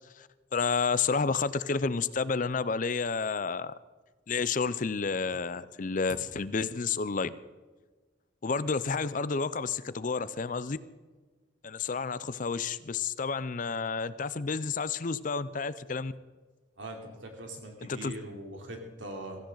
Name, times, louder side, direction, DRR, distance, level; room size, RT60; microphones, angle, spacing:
voice 1, 0.2-3.7 4.3-7.4 8.4-10.8 11.6-16.1 17.8-18.1, left 5 dB, 40° left, 16 dB, 0.5 m, -30 dB
voice 2, 16.8-17.1 17.4-19.4, right 1 dB, 75° right, 2 dB, 3.2 m, -41 dB
16.5 x 15.5 x 3.9 m, 1.3 s
head